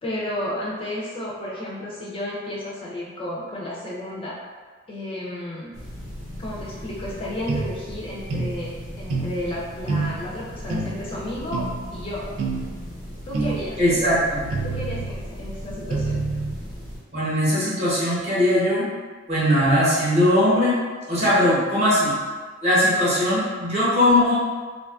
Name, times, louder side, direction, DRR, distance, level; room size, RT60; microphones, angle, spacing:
voice 1, 0.0-4.4 4.9-5.7 6.4-11.7 11.9-12.3 13.3-14.2 14.6-16.2, left 1 dB, 25° left, -5 dB, 0.3 m, -32 dB
sound 1, 5.7-17.0, equal, 5° right, 0.8 m, -38 dB
sound 2, 7.5-7.7 8.3-8.6 9.1-9.4 9.9-10.2 10.7-10.9 11.5-11.7 12.4-12.6 13.3-13.6 14.5-15.2 15.9-16.6, right 3 dB, 90° right, 0.4 m, -26 dB
voice 2, 13.8-14.5 17.1-18.9 19.3-20.8 21.1-22.1 22.6-24.3, left 1 dB, 35° right, -9 dB, 0.8 m, -20 dB
2.5 x 2.3 x 2.3 m, 1.5 s
head